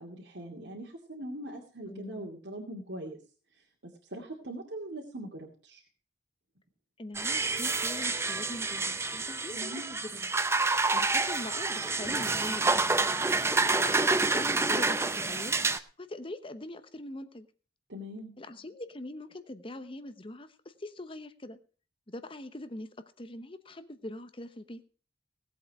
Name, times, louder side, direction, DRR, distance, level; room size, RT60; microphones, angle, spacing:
voice 1, 0.0-3.2 4.1-5.8 9.5-9.9 17.9-18.4, right 1 dB, 70° right, -2 dB, 2.6 m, -41 dB
voice 2, 1.9-2.3 7.0-10.3 10.9-12.9 13.6-15.6 16.0-17.5 18.4-21.6 22.1-24.8, left 1 dB, 30° left, 10 dB, 0.9 m, -42 dB
sound 1, 7.1-15.8, right 3 dB, 15° right, 0.7 m, -28 dB
18.0 x 8.2 x 4.9 m, 0.38 s
head